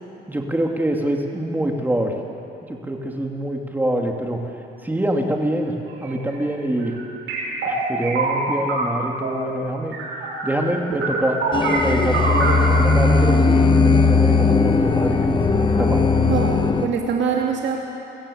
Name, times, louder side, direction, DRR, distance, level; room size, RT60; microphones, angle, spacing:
voice 1, 0.3-2.2 2.7-4.4 4.8-6.9 7.6-10.0 10.4-11.4 11.7-15.4 15.7-16.0, right 1 dB, 10° right, 1 dB, 2.6 m, -25 dB
sound 1, 5.9-6.3 6.8-9.4 9.9-10.7 10.9-12.6, right 3 dB, 85° right, 6.2 m, -25 dB
sound 2, 11.5-16.9, left 4 dB, 25° left, 1.3 m, -17 dB
voice 2, 16.2-17.8, right 6 dB, 65° right, 0 dB, 2.4 m, -23 dB
22.0 x 14.5 x 8.7 m, 2.9 s
cardioid pair, 90°, 20 cm